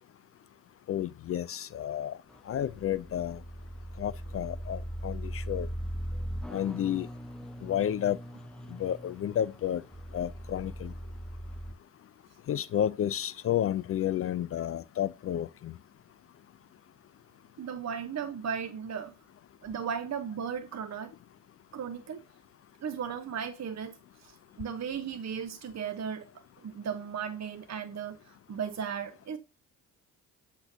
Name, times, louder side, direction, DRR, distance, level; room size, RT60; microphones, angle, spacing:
voice 1, 0.9-2.2 2.5-3.4 4.0-5.7 6.5-7.1 7.6-8.2 8.7-9.8 10.1-10.9 12.5-15.8, left 10 dB, 35° left, 0.4 m, -31 dB
sound 1, 2.3-11.7, right 1 dB, ahead, 0.7 m, -40 dB
voice 2, 17.6-19.1 19.6-21.1 21.7-22.2 22.8-24.0 24.2-26.3 26.6-29.4, right 7 dB, 35° right, 0.9 m, -36 dB
7.8 x 5.8 x 2.7 m
figure-of-eight pair, 40°, 46 cm